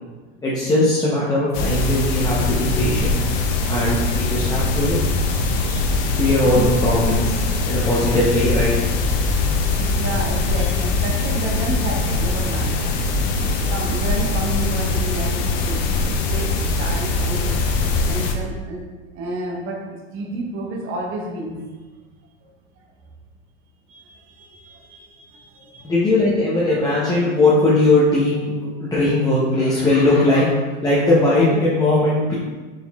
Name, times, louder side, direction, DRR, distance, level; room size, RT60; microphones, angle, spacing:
voice 1, 0.4-3.1 3.7-5.0 6.1-7.4 7.6-8.7 25.8-32.4, left 2 dB, 10° left, -8 dB, 0.7 m, -19 dB
sound 1, 1.5-18.3, left 3 dB, 60° left, 0.7 m, -22 dB
voice 2, 5.3-6.2 6.5-6.7 7.5-7.7 9.8-12.9 13.4-17.6 18.1-18.9 19.1-21.6 22.4-22.5 23.9-25.9, right 2 dB, 40° right, 0 dB, 0.9 m, -31 dB
4.5 x 3.6 x 2.3 m, 1.3 s
supercardioid pair, 115°, 32 cm